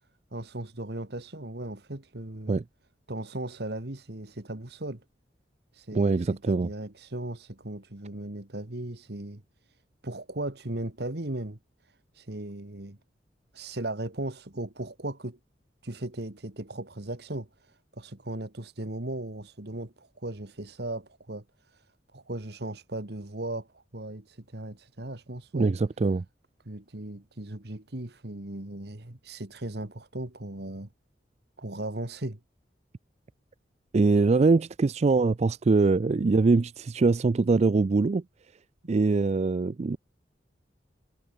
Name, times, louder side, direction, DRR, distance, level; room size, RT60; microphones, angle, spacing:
voice 1, 0.3-2.6 3.1-5.0 5.7-9.4 10.0-11.6 11.8-13.0 13.5-15.4 15.8-21.9 22.1-25.7 26.7-30.9 31.6-32.4, right 1 dB, 65° right, 2.0 m, -37 dB
voice 2, 5.9-6.7 25.5-26.2 33.9-38.2 38.9-40.0, right 3 dB, 40° right, 0.4 m, -23 dB
head